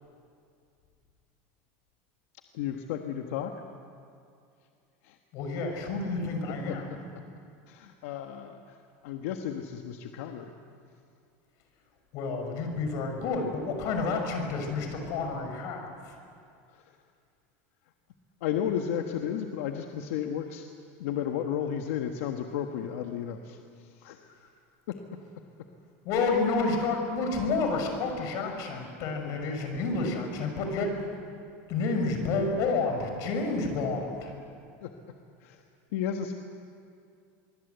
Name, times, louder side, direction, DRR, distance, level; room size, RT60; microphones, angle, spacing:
voice 1, 2.5-3.6 5.0-5.2 6.5-6.8 7.7-10.5 16.7-17.0 18.4-20.7 21.0-24.5 24.9-25.0 29.2-29.6 34.8-34.9 35.4-35.6 35.9-36.3, left 9 dB, 80° left, 4 dB, 1.4 m, -34 dB
voice 2, 5.3-6.9 12.1-16.2 26.0-30.9 31.7-34.4, left 3 dB, 50° left, 4 dB, 5.7 m, -30 dB
24.5 x 23.5 x 8.2 m, 2.4 s
supercardioid pair, 155°, 7 cm